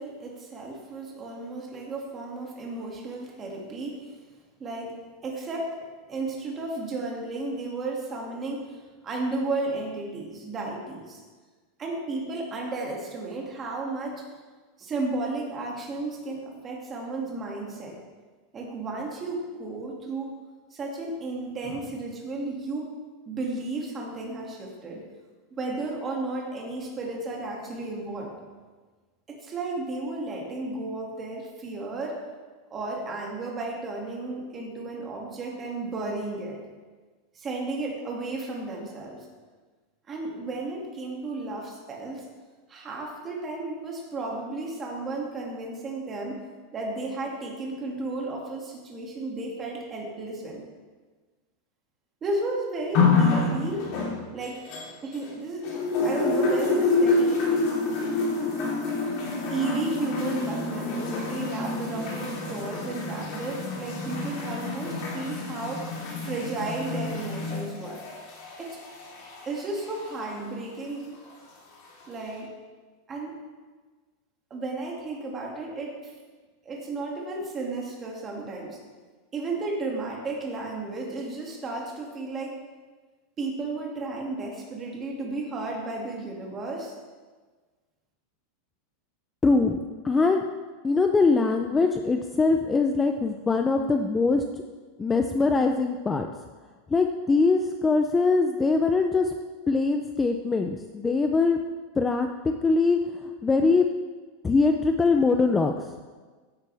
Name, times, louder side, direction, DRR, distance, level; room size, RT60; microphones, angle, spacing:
voice 1, 0.0-4.1 4.6-5.8 6.1-8.8 9.0-11.2 11.8-14.2 14.8-18.0 18.5-20.3 20.7-22.9 23.3-25.0 25.5-28.4 29.3-32.2 32.7-36.6 37.3-39.2 40.1-42.2 42.7-46.4 46.7-50.6 52.2-53.9 54.3-54.6 55.0-55.7 56.0-57.5 59.5-65.8 66.2-68.0 68.6-68.8 69.5-71.1 72.1-72.5 73.1-73.4 74.5-76.1 76.6-78.8 79.3-82.6 83.4-86.9, right 2 dB, 20° right, -1 dB, 2.3 m, -33 dB
sound 1, 52.9-55.3 55.6-70.4 71.2-71.3, left 3 dB, 45° left, 3.5 m, -28 dB
voice 2, 89.4-89.8 90.0-90.4 90.8-94.4 95.0-96.3 96.9-99.3 99.7-101.6 102.0-103.9 104.4-105.9, left 3 dB, 10° left, 5 dB, 0.5 m, -22 dB
15.0 x 10.5 x 3.5 m, 1.4 s
supercardioid pair, 160°, 0 cm